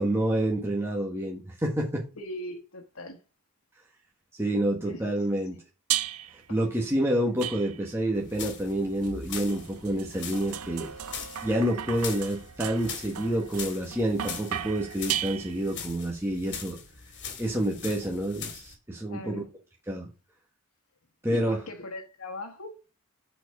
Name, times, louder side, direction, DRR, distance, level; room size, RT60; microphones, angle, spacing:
voice 1, 0.0-2.0 4.4-5.6 6.5-10.9 11.4-16.8 17.4-19.4 19.9-20.1 21.2-21.6, right 1 dB, 10° right, 1.4 m, -28 dB
voice 2, 2.2-3.2 4.8-5.1 6.5-6.6 19.1-19.5 21.3-22.8, left 1 dB, 75° left, 1.3 m, -40 dB
sound 1, 5.9-6.5 7.4-8.1 9.0-15.9, right 11 dB, 90° right, 0.6 m, -36 dB
sound 2, 8.1-18.7, left 6 dB, 55° left, 2.1 m, -41 dB
7.8 x 4.5 x 4.6 m
head